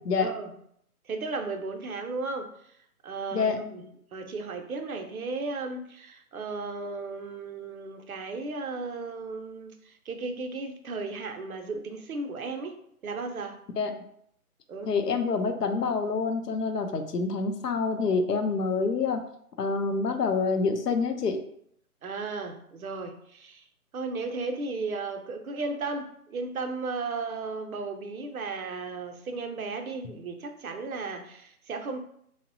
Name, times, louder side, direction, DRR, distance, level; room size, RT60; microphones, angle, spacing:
voice 1, 0.2-0.5 1.0-2.5 3.0-3.8 4.1-13.6 14.7-14.9 22.0-23.6 23.9-32.0, right 3 dB, 65° right, 5 dB, 0.5 m, -35 dB
voice 2, 14.9-19.2 19.6-21.4, left 4 dB, 90° left, 6 dB, 0.6 m, -27 dB
2.9 x 2.1 x 2.6 m, 0.69 s
figure-of-eight pair, 150°, 46 cm